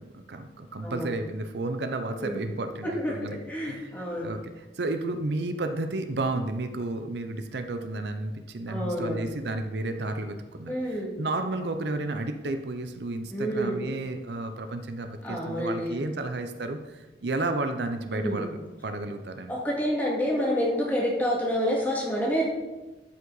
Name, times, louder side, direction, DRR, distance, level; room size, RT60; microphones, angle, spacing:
voice 1, 0.0-19.6, right 2 dB, 70° right, 7 dB, 0.7 m, -32 dB
voice 2, 2.8-4.3 8.7-9.3 10.7-11.1 13.3-13.8 15.2-15.9 18.1-18.5 19.5-22.4, equal, 10° left, -4 dB, 2.1 m, -28 dB
12.5 x 5.5 x 4.0 m, 1.1 s
head